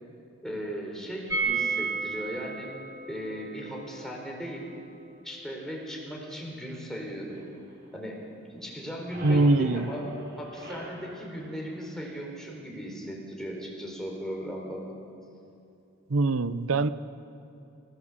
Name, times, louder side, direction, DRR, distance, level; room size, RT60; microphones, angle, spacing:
voice 1, 0.4-2.7 3.1-4.7 5.2-7.4 7.9-8.2 8.5-10.1 10.4-14.9, equal, ahead, -1 dB, 4.1 m, -37 dB
sound 1, 1.3-7.1 7.3-7.4 7.7-7.8, right 4 dB, 15° right, 2.0 m, -34 dB
sound 2, 7.3-8.4 8.7-12.4, right 1 dB, 45° right, 7.2 m, -45 dB
voice 2, 9.2-9.9 16.1-16.9, right 2 dB, 75° right, 14 dB, 0.8 m, -23 dB
28.5 x 17.0 x 7.4 m, 2.7 s
head